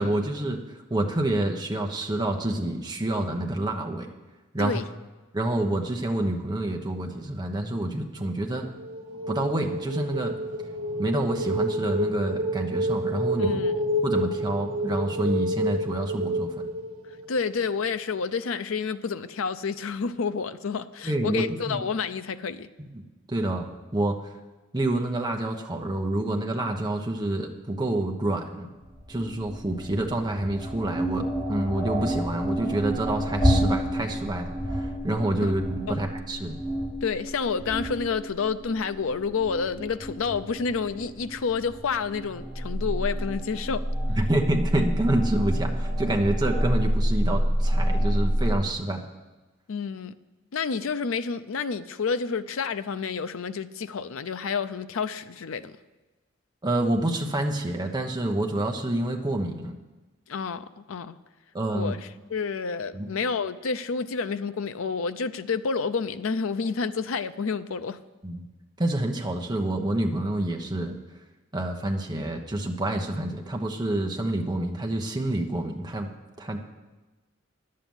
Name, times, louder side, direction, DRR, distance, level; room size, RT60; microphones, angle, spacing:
voice 1, 0.0-4.1 4.5-4.8 5.3-8.7 9.3-10.3 11.0-13.6 14.0-16.6 21.0-21.8 22.8-23.0 23.3-24.3 24.7-28.7 29.1-36.6 44.1-49.0 56.6-59.8 61.5-62.0 62.9-63.1 68.2-68.5 68.8-70.9 71.5-76.1 76.4-76.6, right 1 dB, 20° right, 0.9 m, -28 dB
sound 1, 8.6-17.5, equal, 85° right, 1.2 m, -29 dB
voice 2, 13.4-13.7 17.3-22.7 35.4-35.5 35.9-36.0 37.0-43.8 49.7-50.1 50.5-55.8 60.3-61.2 61.7-62.0 62.3-68.0, left 5 dB, 80° left, 0.5 m, -29 dB
sound 2, 28.8-48.5, equal, 15° left, 4.5 m, -28 dB
10.5 x 7.7 x 7.1 m
head